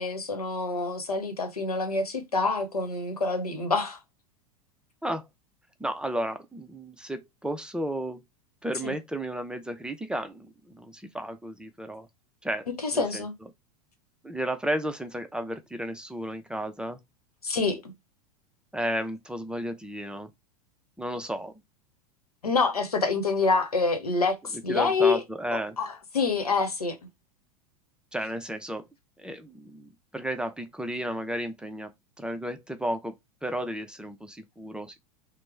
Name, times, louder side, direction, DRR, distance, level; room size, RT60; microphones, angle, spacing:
voice 1, 0.0-4.0 8.8-8.9 12.8-13.3 17.4-17.8 22.4-25.2 25.5-27.0, left 4 dB, 90° left, 0.9 m, -26 dB
voice 2, 5.8-8.2 8.6-12.1 12.4-12.7 12.9-13.3 14.2-17.0 18.7-20.3 21.0-21.5 24.7-25.8 28.1-28.8 29.2-31.9 32.2-33.1 33.4-35.0, right 1 dB, 5° right, 0.5 m, -33 dB
3.0 x 2.1 x 3.3 m
figure-of-eight pair, 90°, 19 cm